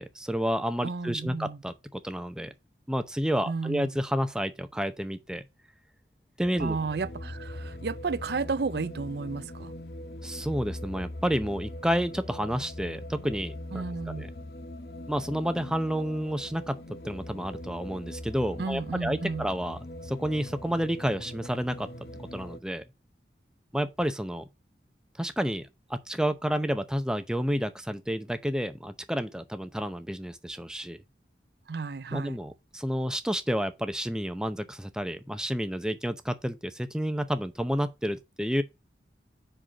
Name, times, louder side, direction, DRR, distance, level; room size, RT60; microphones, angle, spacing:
voice 1, 0.0-2.5 2.9-5.4 6.4-6.8 10.2-14.3 15.1-21.9 22.2-22.8 23.7-24.5 25.2-31.0 32.1-38.6, equal, 5° right, 0.6 m, -30 dB
voice 2, 0.8-1.6 3.5-3.9 6.6-9.7 13.7-14.3 18.6-19.5 31.7-32.4, right 4 dB, 70° right, 0.5 m, -32 dB
sound 1, 6.4-22.6, left 1 dB, 65° left, 0.9 m, -41 dB
5.6 x 5.2 x 4.9 m
head